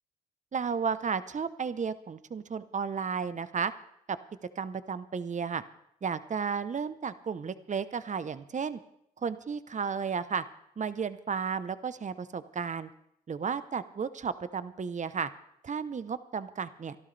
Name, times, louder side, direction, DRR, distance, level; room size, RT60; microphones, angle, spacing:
voice 1, 0.5-3.7 4.1-4.2 4.6-5.6 6.0-8.8 9.2-10.4 10.8-12.9 13.3-15.3 15.6-17.0, right 6 dB, 40° right, 13 dB, 0.9 m, -33 dB
25.0 x 12.0 x 3.4 m, 0.74 s
supercardioid pair, 55°, 19 cm